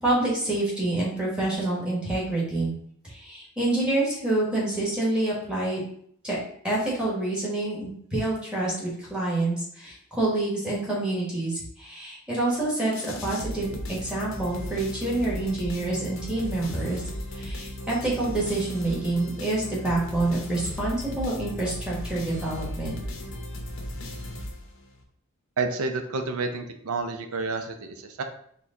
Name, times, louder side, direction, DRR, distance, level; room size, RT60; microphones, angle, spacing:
voice 1, 0.0-2.7 3.0-5.8 6.2-6.4 6.6-17.0 17.3-22.9, right 2 dB, 5° right, -6 dB, 1.2 m, -27 dB
sound 1, 12.9-25.0, left 1 dB, 60° left, 0.7 m, -36 dB
voice 2, 25.6-28.2, right 3 dB, 75° right, 7 dB, 0.5 m, -29 dB
4.4 x 2.2 x 3.6 m, 0.66 s
head